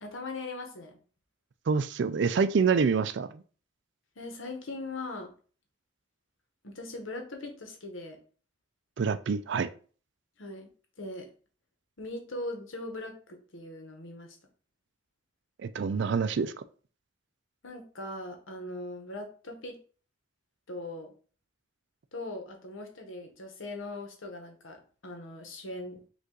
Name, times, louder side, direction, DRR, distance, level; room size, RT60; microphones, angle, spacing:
voice 1, 0.0-1.0 4.2-5.3 6.6-8.2 10.4-10.7 11.0-11.3 12.0-14.4 17.6-19.8 20.7-21.1 22.1-26.0, left 2 dB, 80° left, 4 dB, 1.0 m, -40 dB
voice 2, 1.7-3.4 9.0-9.7 15.6-16.5, right 5 dB, 60° right, 11 dB, 0.4 m, -26 dB
5.2 x 2.5 x 3.8 m, 0.41 s
head